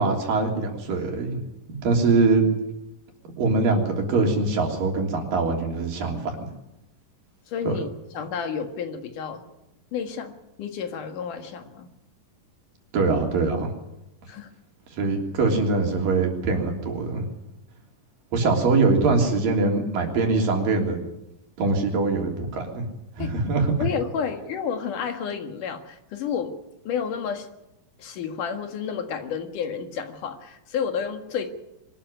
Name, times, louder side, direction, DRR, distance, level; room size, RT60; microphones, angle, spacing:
voice 1, 0.0-1.4 1.8-2.4 3.4-6.4 7.6-7.7 12.9-13.7 14.9-17.3 18.3-21.0 21.6-22.8 23.2-23.7, right 3 dB, 80° right, 1 dB, 5.0 m, -23 dB
voice 2, 7.5-7.9 8.1-9.4 9.9-10.3 10.6-11.9 14.3-14.5 18.4-18.5 23.2-23.3 23.8-26.5 26.8-27.5 28.0-31.5, left 7 dB, 70° left, 6 dB, 3.2 m, -30 dB
24.0 x 13.0 x 10.0 m, 0.90 s
omnidirectional pair, 3.9 m